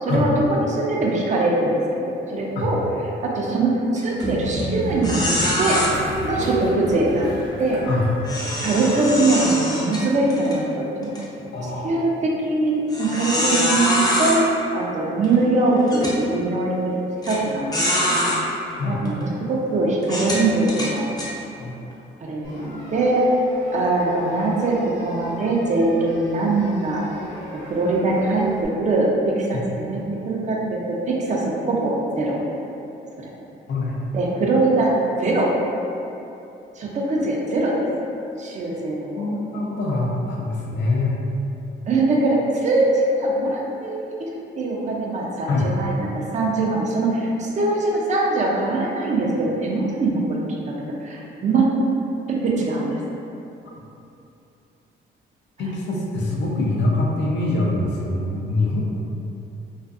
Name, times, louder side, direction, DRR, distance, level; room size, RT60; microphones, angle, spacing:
voice 1, 0.0-1.8 2.1-2.8 3.2-5.3 5.6-5.8 6.2-7.3 7.6-7.8 8.6-11.1 11.8-14.4 14.7-17.0 17.2-18.2 18.8-21.1 22.2-23.2 23.7-27.0 27.5-32.4 33.2-33.3 34.1-34.9 35.2-35.5 36.8-37.8 38.4-39.3 41.9-50.4 50.8-51.7 52.3-53.0, right 2 dB, 35° right, -3 dB, 0.5 m, -22 dB
sound 1, 4.0-4.2 4.6-4.7 5.0-5.9 8.2-10.6 11.0-11.2 11.8-11.9 12.9-14.4 15.2-15.3 15.9-16.2 17.2-17.4 17.7-18.4 19.1-19.2 20.0-21.3, left 1 dB, 20° left, 0.6 m, -23 dB
Train, 4.2-9.5, right 1 dB, 60° right, 0.9 m, -29 dB
voice 2, 11.5-12.0 18.8-19.0 21.6-21.7 29.5-29.6 33.7-34.0 39.1-41.2 45.5-45.7 55.6-58.8, left 2 dB, 60° left, -3 dB, 0.5 m, -24 dB
sound 2, 22.4-28.7, equal, 85° left, 0.9 m, -40 dB
2.4 x 2.4 x 2.4 m, 2.8 s
cardioid pair, 90°, 20 cm